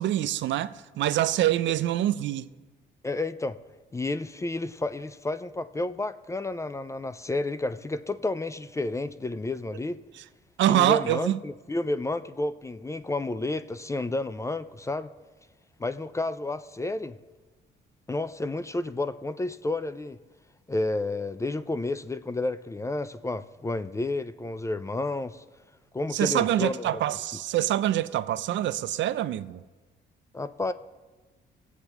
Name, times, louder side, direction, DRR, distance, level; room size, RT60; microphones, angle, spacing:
voice 1, 0.0-2.5 10.6-11.4 26.1-29.6, right 13 dB, 70° right, 0.4 m, -25 dB
voice 2, 3.0-3.6 3.9-10.0 10.7-15.1 15.8-17.2 18.1-20.2 20.7-25.4 25.9-27.0 30.3-30.7, left 2 dB, 15° left, 0.3 m, -31 dB
17.0 x 8.1 x 2.9 m
cardioid pair, 90°, 20 cm